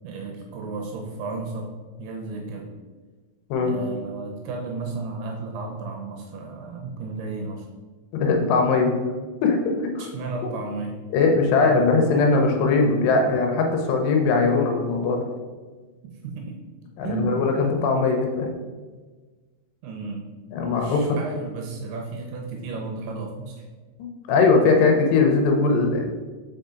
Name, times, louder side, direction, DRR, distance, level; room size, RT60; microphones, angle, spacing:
voice 1, 0.0-1.7 2.0-2.7 3.6-7.7 10.0-11.0 11.6-11.7 16.0-16.6 17.0-17.4 19.8-20.3 20.6-23.6, right 3 dB, 75° right, 1 dB, 2.6 m, -33 dB
voice 2, 8.1-8.9 9.4-10.1 10.4-10.5 11.1-15.2 17.0-18.5 20.5-21.2 24.0-26.1, left 4 dB, 80° left, 3 dB, 2.9 m, -20 dB
5.6 x 5.1 x 3.8 m, 1.3 s
omnidirectional pair, 5.0 m